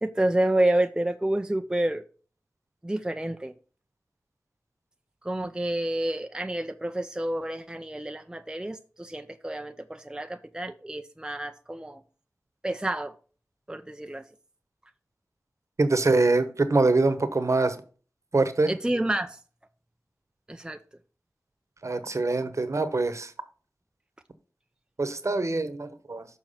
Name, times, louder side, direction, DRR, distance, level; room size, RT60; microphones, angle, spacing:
voice 1, 0.0-2.0 2.8-3.5 5.2-12.0 12.6-13.1 13.7-14.2 18.7-19.4 20.5-20.8, right 1 dB, 15° right, 0.5 m, -29 dB
voice 2, 15.8-17.8 18.3-18.7 21.8-23.3 25.0-26.3, right 3 dB, 55° right, 1.0 m, -24 dB
6.8 x 4.5 x 5.6 m
cardioid pair, 40°, 6 cm